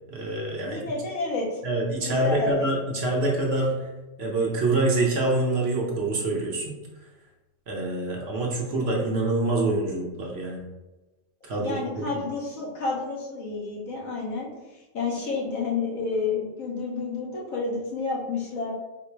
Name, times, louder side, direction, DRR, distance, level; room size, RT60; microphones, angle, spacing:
voice 1, 0.1-0.8 1.6-3.7 4.2-6.8 7.7-10.6 11.4-12.0, right 2 dB, 60° right, -1 dB, 0.9 m, -26 dB
voice 2, 0.7-1.6 2.1-2.7 11.5-18.7, left 3 dB, 80° left, -4 dB, 1.5 m, -30 dB
3.8 x 2.0 x 4.4 m, 1.1 s
omnidirectional pair, 1.4 m